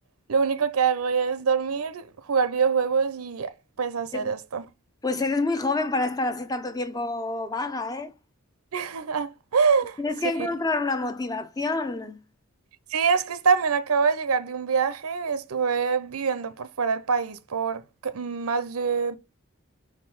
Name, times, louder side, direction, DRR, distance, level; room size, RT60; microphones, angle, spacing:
voice 1, 0.3-3.5 3.8-4.6 8.7-10.0 12.9-19.2, right 5 dB, 80° right, 0.6 m, -25 dB
voice 2, 5.0-8.1 10.0-12.2, left 3 dB, 15° left, 0.5 m, -28 dB
4.8 x 3.8 x 5.5 m
head